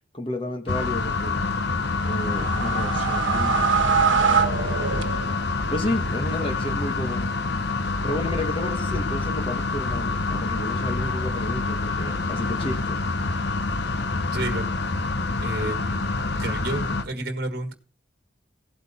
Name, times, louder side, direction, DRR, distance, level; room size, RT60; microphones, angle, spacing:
voice 1, 0.1-1.4 2.0-3.7 5.7-7.3 8.0-13.0, left 1 dB, 25° left, 1.5 m, -31 dB
sound 1, 0.7-17.0, left 3 dB, 55° left, 1.1 m, -27 dB
sound 2, 1.8-5.6, right 6 dB, 80° right, 1.3 m, -24 dB
voice 2, 14.3-14.7 15.4-16.1 16.4-17.7, right 2 dB, 50° right, 1.6 m, -31 dB
16.5 x 8.1 x 4.3 m
head